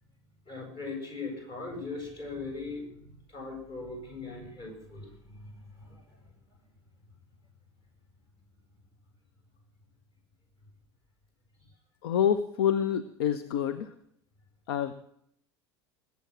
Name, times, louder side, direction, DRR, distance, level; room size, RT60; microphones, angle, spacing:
voice 1, 0.5-6.2, left 3 dB, 35° left, 1 dB, 8.0 m, -40 dB
voice 2, 12.0-13.9 14.7-14.9, left 9 dB, 60° left, 13 dB, 0.8 m, -27 dB
20.5 x 8.4 x 7.6 m, 0.70 s
figure-of-eight pair, 75°, 14 cm